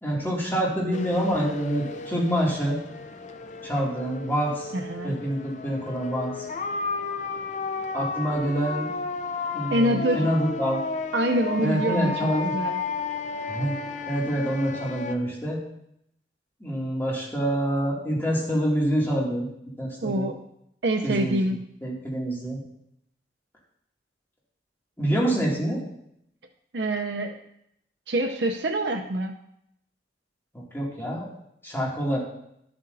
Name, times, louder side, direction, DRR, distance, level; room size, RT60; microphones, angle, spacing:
voice 1, 0.0-2.8 3.6-4.7 5.0-6.4 7.9-8.9 9.5-10.8 11.6-12.5 13.5-13.8 14.1-15.6 16.6-19.5 19.8-20.3 21.0-21.5 21.8-22.6 25.0-25.8 30.5-31.3 31.6-32.2, equal, 15° left, -5 dB, 2.5 m, -26 dB
sound 1, 0.9-15.2, left 4 dB, 40° left, 0.5 m, -33 dB
voice 2, 4.7-5.2 9.7-10.3 11.1-12.8 20.0-20.4 20.8-21.6 26.7-27.4 28.1-29.3, right 1 dB, 70° right, 3 dB, 0.6 m, -25 dB
11.5 x 7.8 x 2.7 m, 0.75 s
head